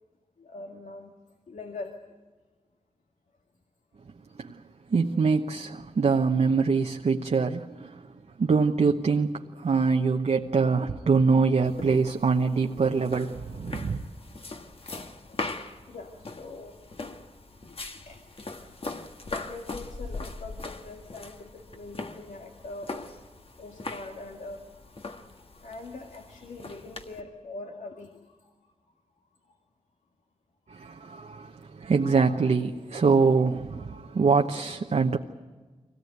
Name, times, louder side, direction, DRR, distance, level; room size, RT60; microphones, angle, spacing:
voice 1, 0.4-1.1 1.5-1.9 15.3-15.4 15.9-16.7 17.6-17.8 18.1-18.3 18.6-18.7 19.2-22.9 23.6-24.6 25.2-25.3 25.6-28.4, left 2 dB, 80° left, 2.0 m, -42 dB
voice 2, 4.9-8.0 8.4-14.0 30.7-35.2, right 4 dB, 65° right, 1.0 m, -24 dB
sound 1, 11.6-27.2, left 3 dB, 50° left, 1.7 m, -41 dB
24.0 x 18.0 x 9.3 m
wide cardioid pair, 75°, 12 cm